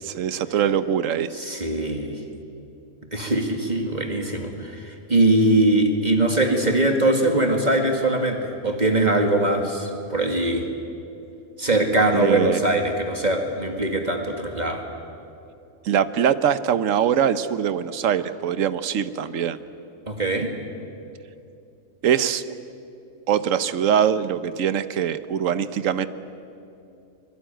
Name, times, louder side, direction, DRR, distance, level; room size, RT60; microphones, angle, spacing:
voice 1, 0.0-1.3 12.1-12.6 15.8-19.6 22.0-22.4 23.3-26.1, right 8 dB, 70° right, 13 dB, 1.2 m, -22 dB
voice 2, 1.3-2.2 3.1-10.7 11.6-14.8 20.1-20.5, right 2 dB, 30° right, 3 dB, 2.2 m, -22 dB
23.5 x 22.5 x 9.1 m, 2.7 s
omnidirectional pair, 1.4 m